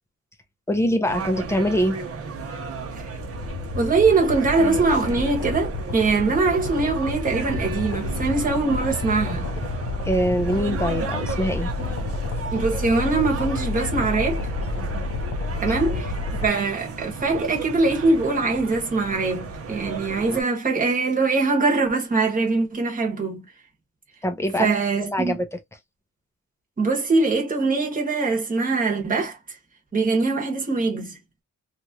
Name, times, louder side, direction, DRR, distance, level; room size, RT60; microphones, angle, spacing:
voice 1, 0.7-2.0 10.0-11.7 24.2-25.5, equal, 10° left, 0.6 m, -24 dB
sound 1, 1.0-20.4, right 4 dB, 50° right, 0.8 m, -34 dB
sound 2, 2.8-16.5, left 3 dB, 60° left, 0.6 m, -30 dB
voice 2, 3.7-9.5 12.5-14.4 15.6-16.2 16.4-23.5 24.6-25.4 26.8-29.4 29.9-31.2, right 3 dB, 25° right, 1.1 m, -22 dB
3.0 x 2.5 x 2.7 m
wide cardioid pair, 175°, 30 cm